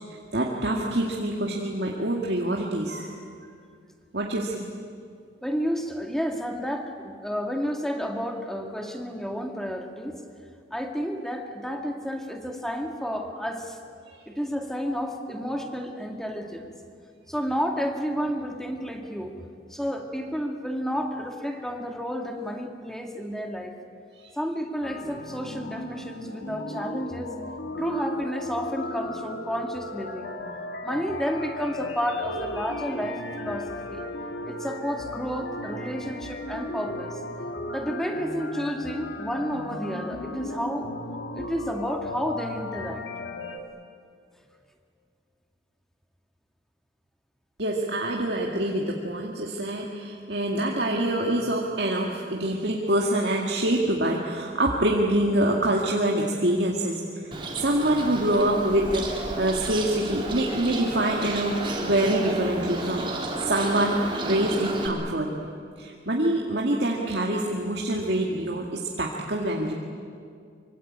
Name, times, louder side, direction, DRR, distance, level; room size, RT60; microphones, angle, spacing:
voice 1, 0.1-3.2 4.1-4.7 14.1-14.2 24.2-24.3 27.8-28.0 47.6-63.1 63.4-69.7, right 1 dB, 60° right, -2 dB, 2.2 m, -26 dB
voice 2, 5.4-10.2 10.7-13.8 14.3-16.7 17.3-19.3 19.7-23.7 24.4-27.3 27.8-30.4 30.8-34.0 34.4-37.2 37.7-40.9 41.3-43.0, equal, ahead, 3 dB, 2.1 m, -31 dB
sound 1, 24.8-43.6, left 1 dB, 75° left, 2.3 m, -35 dB
Bird, 57.3-64.9, right 2 dB, 25° right, 3.6 m, -32 dB
24.5 x 24.5 x 8.8 m, 2.3 s
head